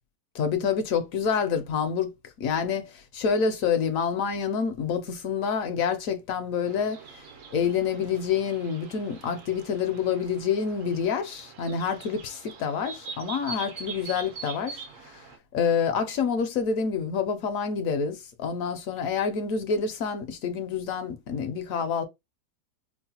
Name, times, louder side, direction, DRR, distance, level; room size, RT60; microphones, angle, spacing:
voice 1, 0.3-2.1 2.4-7.2 7.5-15.3 15.5-22.0, left 6 dB, 70° left, 0.9 m, -27 dB
sound 1, 6.6-15.4, right 5 dB, 65° right, 0.9 m, -43 dB
4.3 x 2.1 x 2.8 m
omnidirectional pair, 1.6 m